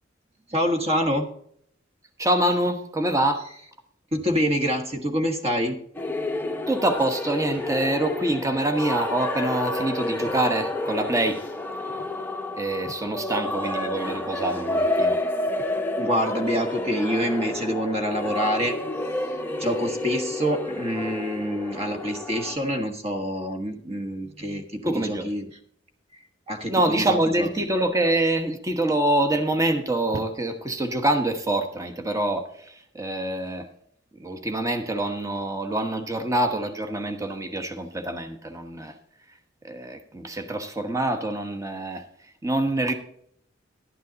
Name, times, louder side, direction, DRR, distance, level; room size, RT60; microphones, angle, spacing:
voice 1, 0.5-1.3 4.1-5.8 16.0-18.8 19.6-25.5 26.5-27.5, equal, 30° right, 5 dB, 1.4 m, -26 dB
voice 2, 2.2-3.4 6.7-11.4 12.6-15.2 24.9-25.3 26.7-33.7 34.2-38.9 39.6-42.0 42.4-42.9, right 1 dB, 15° right, 7 dB, 1.1 m, -25 dB
sound 1, 5.9-22.6, left 1 dB, 10° left, 0.8 m, -29 dB
11.5 x 9.4 x 4.0 m, 0.66 s
head